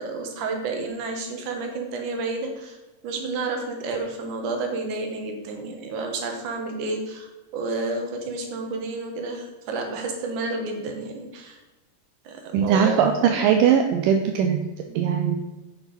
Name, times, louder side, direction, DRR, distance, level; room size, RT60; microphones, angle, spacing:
voice 1, 0.0-2.8 3.0-11.6 12.3-13.7 14.9-15.1, right 3 dB, 65° right, 3 dB, 2.9 m, -30 dB
voice 2, 12.5-14.6 15.0-15.4, right 8 dB, 85° right, 4 dB, 2.4 m, -20 dB
10.0 x 5.9 x 5.6 m, 1.1 s
omnidirectional pair, 3.9 m